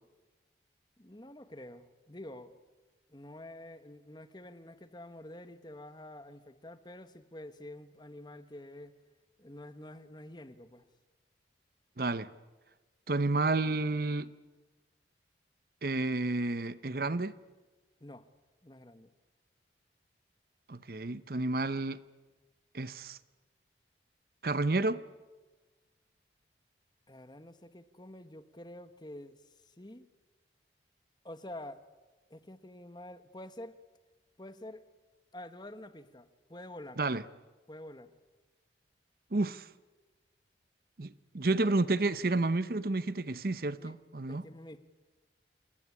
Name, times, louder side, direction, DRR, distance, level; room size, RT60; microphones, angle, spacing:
voice 1, 1.0-2.5 3.1-9.0 9.4-10.8 18.0-18.3 18.6-19.1 27.1-30.1 31.2-31.8 32.3-33.8 34.4-34.9 35.3-37.0 37.7-38.1 43.8-44.0 44.3-44.8, left 1 dB, 25° left, 1.3 m, -48 dB
voice 2, 12.0-12.3 13.1-14.3 15.8-17.3 20.7-22.0 22.7-23.2 24.4-25.0 37.0-37.2 39.3-39.7 41.0-44.4, right 2 dB, 55° right, 0.8 m, -30 dB
28.0 x 20.0 x 9.8 m
head